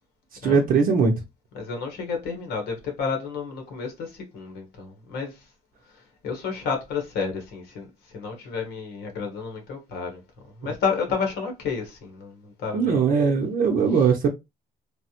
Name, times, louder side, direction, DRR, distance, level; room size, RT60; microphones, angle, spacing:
voice 1, 0.4-1.1 12.7-14.3, right 5 dB, 55° right, 0.6 m, -20 dB
voice 2, 1.5-5.4 6.2-7.9 8.1-10.2 10.6-13.0, left 5 dB, 80° left, 1.2 m, -31 dB
3.3 x 2.1 x 2.8 m
cardioid pair, 110°, 17 cm